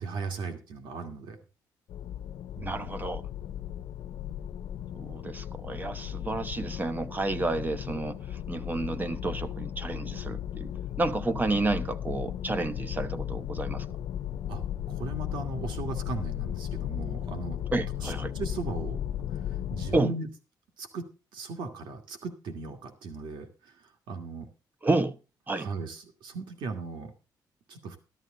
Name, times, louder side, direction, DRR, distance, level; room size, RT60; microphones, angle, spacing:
voice 1, 0.0-1.4 2.6-2.9 14.5-14.6 14.9-17.6 18.0-19.0 19.3-20.3 20.8-24.5 25.5-27.1 27.7-28.0, right 3 dB, 85° right, 2.3 m, -37 dB
sound 1, 1.9-20.0, left 11 dB, 75° left, 0.6 m, -36 dB
voice 2, 2.6-3.3 4.9-13.9 17.7-18.3 19.9-20.1 24.8-25.2 25.5-25.7, right 2 dB, 25° right, 1.0 m, -30 dB
13.0 x 12.5 x 3.9 m
cardioid pair, 115°, 8 cm